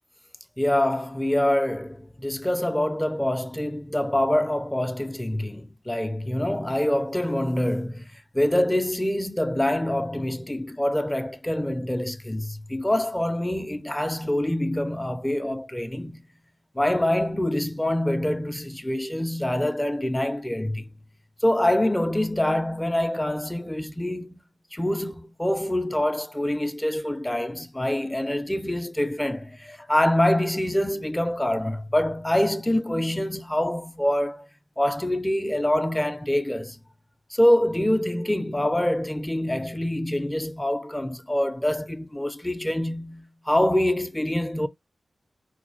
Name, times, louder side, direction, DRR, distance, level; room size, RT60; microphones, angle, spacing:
voice 1, 0.6-8.1 8.3-16.2 16.8-20.9 21.4-24.4 24.7-34.5 34.8-36.8 37.3-44.7, left 1 dB, 10° left, 0.5 m, -25 dB
4.1 x 2.3 x 3.0 m
wide cardioid pair, 75°, 0 cm